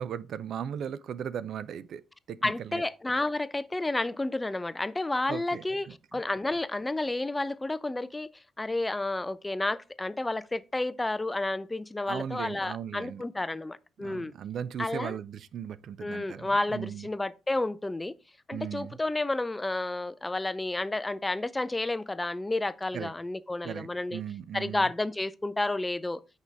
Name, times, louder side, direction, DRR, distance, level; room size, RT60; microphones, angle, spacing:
voice 1, 0.0-2.0 2.3-2.8 5.3-6.2 12.1-13.2 14.0-17.1 18.5-19.0 22.9-23.1 23.6-24.9, right 8 dB, 65° right, 0.4 m, -37 dB
voice 2, 2.4-5.9 6.1-8.3 8.6-14.3 14.8-15.2 16.0-18.1 18.5-24.2 24.5-26.2, left 2 dB, 15° left, 0.4 m, -31 dB
6.2 x 5.3 x 3.4 m
cardioid pair, 90°, 0 cm